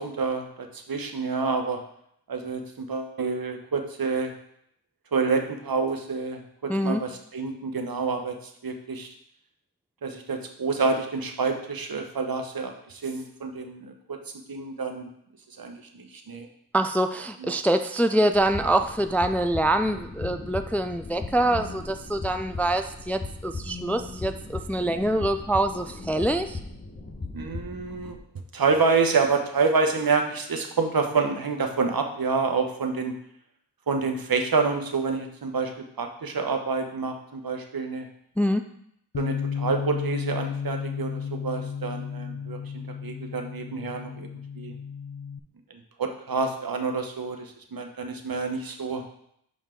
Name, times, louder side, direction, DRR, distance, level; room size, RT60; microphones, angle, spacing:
voice 1, 0.0-1.8 2.3-4.3 5.1-9.1 10.0-14.2 14.5-15.1 15.6-16.5 17.4-17.5 27.3-28.2 28.5-33.2 33.9-38.1 39.2-44.3 44.6-44.7 46.0-49.0, right 4 dB, 60° right, 5 dB, 1.0 m, -28 dB
voice 2, 6.7-7.0 16.7-26.6 38.4-38.6, right 1 dB, 5° left, 8 dB, 0.3 m, -25 dB
sound 1, 18.3-28.2, left 3 dB, 25° left, 1.1 m, -38 dB
Bass guitar, 39.1-45.4, left 7 dB, 50° left, 0.6 m, -33 dB
6.3 x 5.4 x 3.7 m, 0.72 s
cardioid pair, 45°, 39 cm